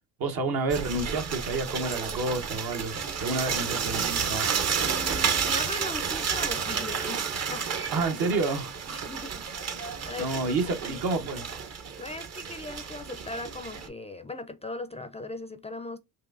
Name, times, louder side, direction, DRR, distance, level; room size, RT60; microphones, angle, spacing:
voice 1, 0.2-4.5 7.9-8.7 10.2-11.5, right 3 dB, 65° right, 1.0 m, -29 dB
sound 1, 0.7-13.9, right 6 dB, 40° right, 0.7 m, -31 dB
voice 2, 4.8-7.8 8.9-9.5 10.1-11.2 12.0-16.0, left 2 dB, 15° left, 0.4 m, -39 dB
4.6 x 2.6 x 2.5 m
supercardioid pair, 60°, 39 cm